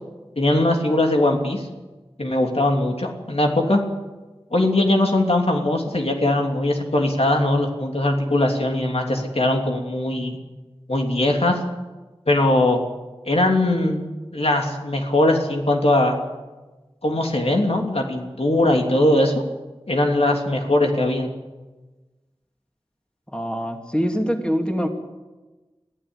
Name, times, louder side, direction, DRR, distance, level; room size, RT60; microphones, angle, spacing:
voice 1, 0.4-1.7 2.2-3.8 4.5-10.4 10.9-11.6 12.3-12.8 13.2-14.0 14.3-16.2 17.0-19.4 19.9-21.3, left 1 dB, 70° left, 2 dB, 3.1 m, -20 dB
voice 2, 23.3-24.9, equal, 10° left, 3 dB, 2.9 m, -24 dB
22.5 x 15.0 x 8.9 m, 1.2 s
wide cardioid pair, 45°, 11 cm